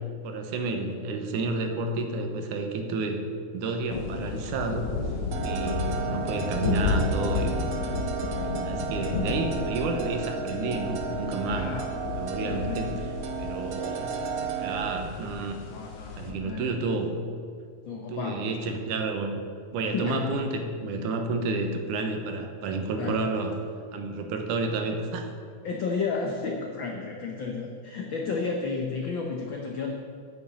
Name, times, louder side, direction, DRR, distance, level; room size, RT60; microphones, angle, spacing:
voice 1, 0.2-3.2 3.5-4.9 5.4-7.6 8.3-11.7 12.1-13.1 13.4-14.1 14.6-15.6 16.1-17.1 18.1-19.4 19.7-23.5 23.9-25.3, right 3 dB, 85° right, 4 dB, 2.6 m, -30 dB
sound 1, 3.9-16.3, left 4 dB, 65° left, 1.4 m, -32 dB
sound 2, 5.3-14.9, right 5 dB, 70° right, 1.8 m, -33 dB
voice 2, 11.5-11.9 12.4-13.0 15.7-16.9 17.9-18.5 19.9-20.3 23.0-23.2 25.6-29.9, left 4 dB, 85° left, 2 dB, 1.0 m, -32 dB
9.4 x 6.6 x 8.6 m, 2.1 s
omnidirectional pair, 3.5 m